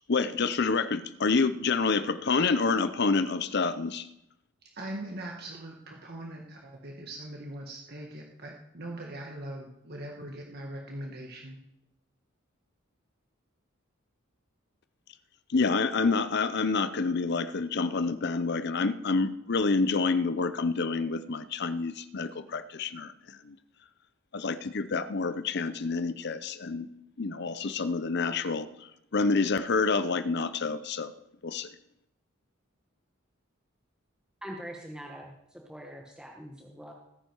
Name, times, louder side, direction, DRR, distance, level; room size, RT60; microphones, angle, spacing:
voice 1, 0.1-4.1 15.5-23.1 23.5-23.6 24.3-26.9 27.2-28.7 29.1-31.1 31.4-31.7, left 4 dB, 50° left, 13 dB, 0.6 m, -28 dB
voice 2, 4.7-11.6, right 1 dB, 50° right, 0 dB, 1.6 m, -41 dB
voice 3, 34.4-36.9, equal, 5° right, -1 dB, 1.3 m, -43 dB
18.5 x 10.0 x 4.6 m, 0.86 s
head